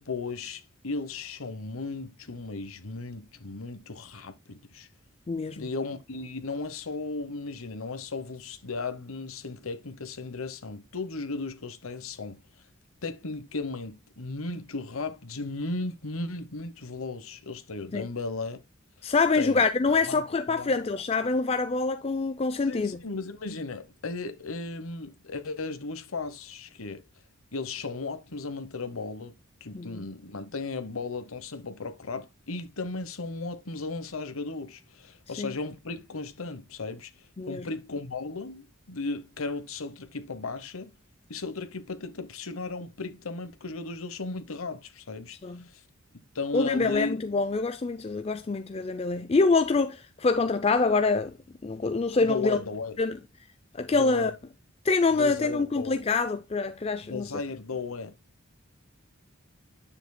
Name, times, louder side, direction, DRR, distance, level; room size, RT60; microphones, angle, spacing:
voice 1, 0.0-4.9 5.6-12.4 13.0-18.6 19.3-19.7 20.1-20.2 20.5-20.9 22.7-27.0 27.5-29.4 29.6-37.1 37.5-40.9 41.3-45.8 46.3-47.2 52.2-53.0 53.9-54.3 55.1-56.0 57.1-58.1, left 3 dB, 85° left, 1.1 m, -35 dB
voice 2, 5.3-5.7 17.9-18.1 19.0-23.0 29.7-30.1 35.4-35.5 37.4-37.7 45.4-45.6 46.5-51.3 51.6-52.6 53.0-53.2 53.7-54.3 54.8-57.3, left 3 dB, 30° left, 0.4 m, -25 dB
9.8 x 7.1 x 2.2 m
head